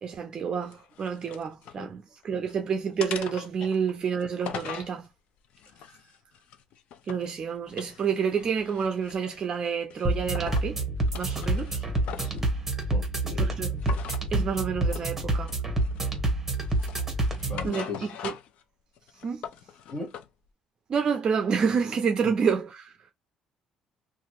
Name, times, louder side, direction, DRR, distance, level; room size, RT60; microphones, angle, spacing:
voice 1, 0.0-5.1 7.1-10.8 11.1-11.8 13.4-14.0 14.3-15.6 17.4-18.3 19.2-19.4 20.9-23.0, right 6 dB, 35° right, 0.5 m, -29 dB
sound 1, 0.6-1.8 2.2-2.6 3.0-4.9 5.5-7.3 7.7-9.5 9.9-10.7 11.0-12.4 13.8-14.3 14.9-15.1 15.5-16.2 16.6-18.6 19.0-20.3, left 8 dB, 65° left, 0.5 m, -41 dB
sound 2, 10.0-17.7, right 2 dB, 10° right, 1.1 m, -28 dB
voice 2, 12.9-13.6 17.5-18.1 19.9-20.2, left 3 dB, 35° left, 1.3 m, -38 dB
2.9 x 2.5 x 2.8 m
cardioid pair, 145°, 2 cm